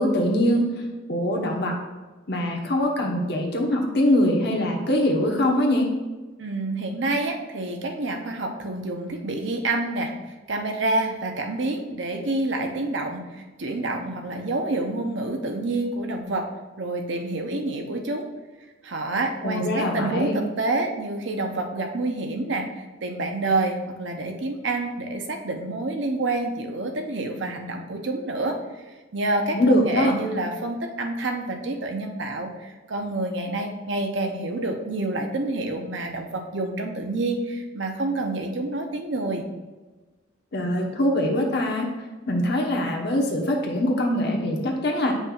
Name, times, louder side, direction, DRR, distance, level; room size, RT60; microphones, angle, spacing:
voice 1, 0.0-1.8 2.3-5.9 19.4-20.3 29.5-30.1 40.5-41.9 42.3-45.1, left 1 dB, 60° left, 1 dB, 1.1 m, -23 dB
voice 2, 6.4-16.5 16.8-18.3 18.8-28.6 29.1-39.4, right 2 dB, 65° right, 4 dB, 0.8 m, -28 dB
8.6 x 5.5 x 2.4 m, 1.2 s
head